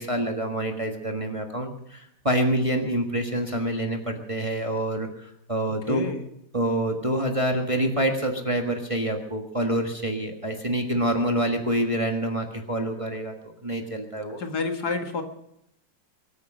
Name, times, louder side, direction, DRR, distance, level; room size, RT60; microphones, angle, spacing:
voice 1, 0.0-6.1 6.5-13.3 13.6-14.4, right 1 dB, 20° right, 3 dB, 1.5 m, -26 dB
voice 2, 5.9-6.3 14.4-15.2, left 3 dB, 60° left, 5 dB, 2.2 m, -29 dB
23.0 x 9.4 x 6.4 m, 0.76 s
omnidirectional pair, 2.0 m